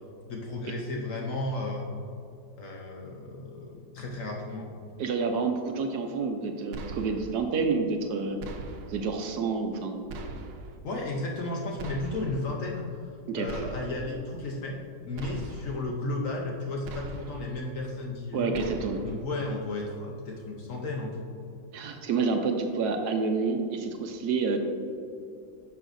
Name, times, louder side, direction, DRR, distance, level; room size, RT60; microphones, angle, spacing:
voice 1, 0.3-1.8 2.6-4.7 10.8-18.6 19.0-21.2, left 2 dB, 60° left, 0 dB, 0.9 m, -34 dB
voice 2, 5.0-8.4 8.9-10.1 13.3-13.5 18.3-19.0 21.7-24.6, right 4 dB, 70° right, 4 dB, 1.1 m, -28 dB
sound 1, 6.7-7.4 8.4-9.1 10.1-10.8 11.8-12.5 13.5-14.2 15.2-15.9 16.8-17.5 18.5-19.2, right 3 dB, 90° right, 1.3 m, -41 dB
9.7 x 5.7 x 2.6 m, 2.5 s
omnidirectional pair, 1.9 m